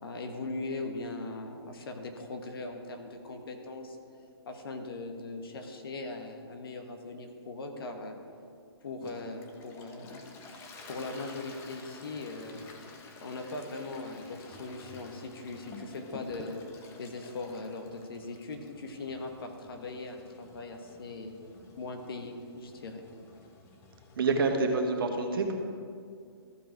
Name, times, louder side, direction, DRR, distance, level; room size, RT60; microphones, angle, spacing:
voice 1, 0.0-4.0 4.5-8.2 8.8-10.2 10.5-12.6 13.2-16.7 17.0-21.3 21.8-23.0, left 3 dB, 60° left, 4 dB, 1.4 m, -40 dB
Toilet flush, 9.0-24.6, left 3 dB, 20° left, 0.8 m, -51 dB
voice 2, 24.2-25.6, right 3 dB, 60° right, 3 dB, 1.4 m, -27 dB
14.5 x 5.1 x 4.7 m, 2.3 s
hypercardioid pair, 140°, 13 cm